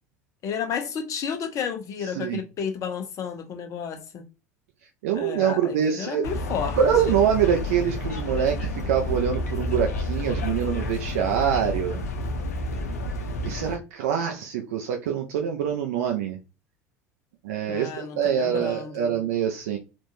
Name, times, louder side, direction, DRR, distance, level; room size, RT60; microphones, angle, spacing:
voice 1, 0.4-4.2 5.1-6.8 7.1-7.2 17.7-19.1, left 7 dB, 40° left, 0.8 m, -32 dB
voice 2, 5.0-6.3 6.7-12.0 13.4-16.4 17.4-19.8, right 8 dB, 60° right, 0.5 m, -25 dB
sound 1, 6.2-13.7, left 2 dB, 70° left, 0.7 m, -30 dB
3.6 x 2.5 x 2.6 m
figure-of-eight pair, 70°, 8 cm